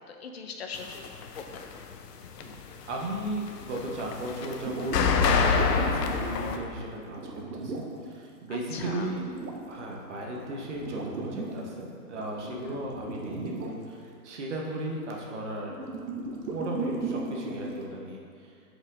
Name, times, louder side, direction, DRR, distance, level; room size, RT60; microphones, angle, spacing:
voice 1, 0.1-1.6 8.5-9.1 12.5-12.8, left 5 dB, 40° left, 4 dB, 0.5 m, -41 dB
sound 1, 0.8-1.9 2.2-6.6, left 6 dB, 80° left, 0.7 m, -26 dB
voice 2, 2.9-9.2 9.7-15.7 16.4-18.3, right 1 dB, 45° right, -2 dB, 1.1 m, -36 dB
sound 2, 4.3-8.0 8.6-11.6 12.2-13.7 15.7-17.9, right 3 dB, 85° right, 1.1 m, -36 dB
6.1 x 5.2 x 3.7 m, 2.4 s
hypercardioid pair, 170°, 48 cm